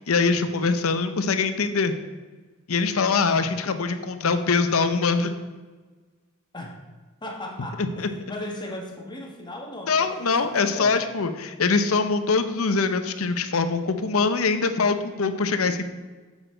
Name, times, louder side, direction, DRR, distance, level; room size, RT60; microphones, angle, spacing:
voice 1, 0.1-1.9 2.7-5.3 7.8-8.1 9.9-15.9, left 4 dB, 75° left, 9 dB, 0.7 m, -23 dB
voice 2, 7.2-10.4 10.6-11.1 15.1-15.4, left 1 dB, 20° left, 0 dB, 1.5 m, -37 dB
7.9 x 7.2 x 4.5 m, 1.3 s
head